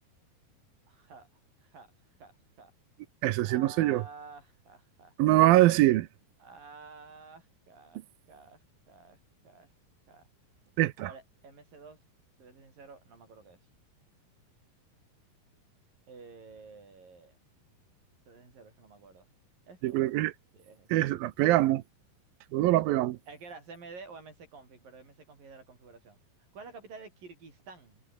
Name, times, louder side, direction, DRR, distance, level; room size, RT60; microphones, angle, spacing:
voice 1, 0.9-1.3 1.6-1.9 2.2-2.7 3.4-5.1 6.4-9.2 9.4-9.7 10.1-10.3 11.0-12.0 12.4-13.6 16.1-17.4 18.3-19.3 19.7-20.0 20.5-20.9 23.3-26.2 26.5-28.0, right 4 dB, 60° right, 9.4 m, -50 dB
voice 2, 3.2-4.0 5.2-6.1 10.8-11.1 19.8-20.3 20.9-21.8 22.5-23.2, right 16 dB, 75° right, 2.5 m, -23 dB
omnidirectional pair, 4.5 m